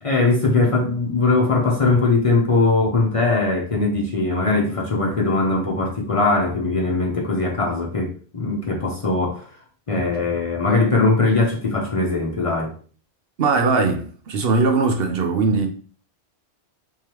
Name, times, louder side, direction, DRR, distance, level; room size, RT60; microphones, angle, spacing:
voice 1, 0.0-9.4 9.9-12.7, left 3 dB, 40° left, 0.6 m, -20 dB
voice 2, 13.4-15.7, right 4 dB, 65° right, 0.8 m, -20 dB
3.6 x 3.2 x 3.0 m
omnidirectional pair, 1.1 m